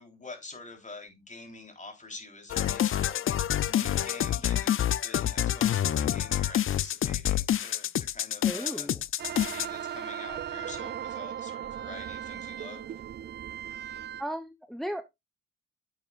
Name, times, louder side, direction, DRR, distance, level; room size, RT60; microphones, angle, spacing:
voice 1, 0.0-3.3 3.6-8.9 9.5-12.9, left 3 dB, 25° left, 3.7 m, -46 dB
sound 1, 2.5-9.7, left 11 dB, 45° left, 0.5 m, -27 dB
voice 2, 8.4-9.0 14.2-15.0, equal, ahead, 0.9 m, -35 dB
sound 2, 9.2-14.2, right 10 dB, 35° right, 0.4 m, -37 dB
9.6 x 7.9 x 2.5 m
cardioid pair, 90°, 30 cm